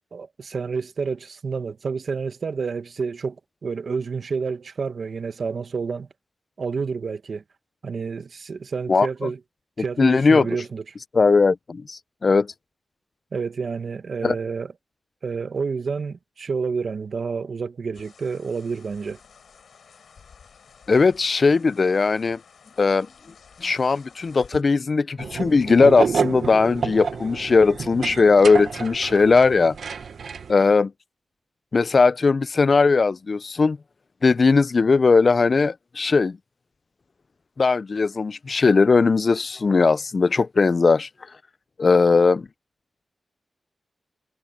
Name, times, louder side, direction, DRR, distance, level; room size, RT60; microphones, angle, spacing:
voice 1, 0.0-3.4 3.6-6.1 6.6-7.4 7.8-9.4 9.8-10.8 13.3-14.7 15.2-19.2, right 5 dB, 65° right, 1.3 m, -29 dB
voice 2, 8.9-9.3 10.0-10.5 11.1-12.5 14.2-14.4 20.9-22.4 22.8-23.1 23.6-29.8 30.5-30.9 31.7-33.8 34.2-36.4 37.6-41.1 41.8-42.5, left 4 dB, 50° left, 0.3 m, -18 dB
sound 1, 17.9-24.6, left 6 dB, 85° left, 4.0 m, -52 dB
sound 2, 25.2-30.5, right 6 dB, 80° right, 1.0 m, -29 dB
wide cardioid pair, 105°, 0 cm